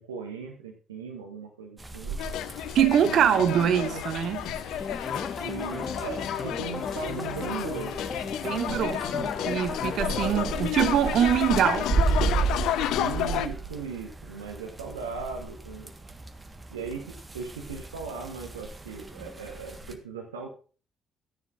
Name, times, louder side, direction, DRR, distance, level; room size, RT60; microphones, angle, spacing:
voice 1, 0.0-2.2 2.9-4.0 5.4-7.9 10.1-10.6 13.0-15.9 16.7-20.5, right 5 dB, 80° right, 1.3 m, -38 dB
sound 1, 1.8-19.9, right 4 dB, 20° right, 1.5 m, -35 dB
sound 2, 2.2-13.5, left 11 dB, 60° left, 0.6 m, -31 dB
voice 2, 2.7-4.4 8.4-11.9, right 9 dB, 55° right, 1.0 m, -24 dB
sound 3, 4.8-11.8, left 5 dB, 35° left, 1.2 m, -37 dB
13.0 x 10.0 x 2.6 m
figure-of-eight pair, 45°, 0 cm